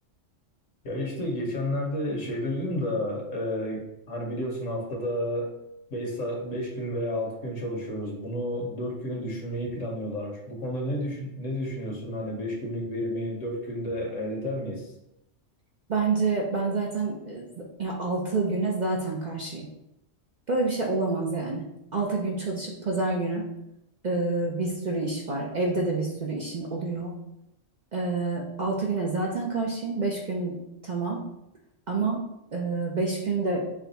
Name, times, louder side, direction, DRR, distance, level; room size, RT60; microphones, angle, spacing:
voice 1, 0.8-5.5 5.9-14.9, equal, 75° left, 0 dB, 1.4 m, -31 dB
voice 2, 15.9-19.7 20.5-21.6 21.9-23.4 24.0-27.1 27.9-30.6 30.8-31.2 31.9-32.2 32.5-33.6, right 3 dB, 45° right, -2 dB, 0.6 m, -28 dB
5.8 x 2.3 x 4.0 m, 0.83 s
omnidirectional pair, 1.3 m